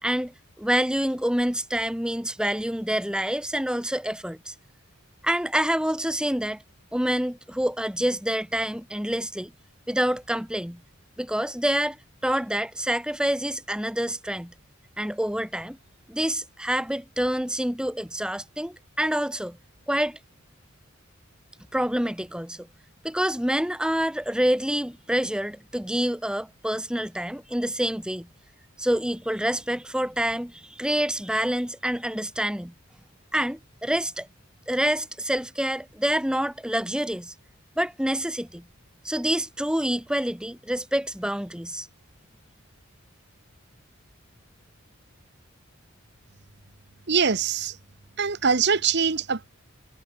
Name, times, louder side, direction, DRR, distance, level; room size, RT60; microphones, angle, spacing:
voice 1, 0.0-4.5 5.2-6.6 6.9-9.5 9.9-10.8 11.2-12.0 12.2-14.5 15.0-15.8 16.1-19.6 19.9-20.2 21.7-22.7 23.0-28.3 28.8-32.7 33.3-34.3 34.7-37.3 37.8-38.6 39.0-41.9, equal, 5° right, 1.6 m, -27 dB
voice 2, 47.1-47.8 48.2-49.5, right 6 dB, 55° right, 1.1 m, -23 dB
head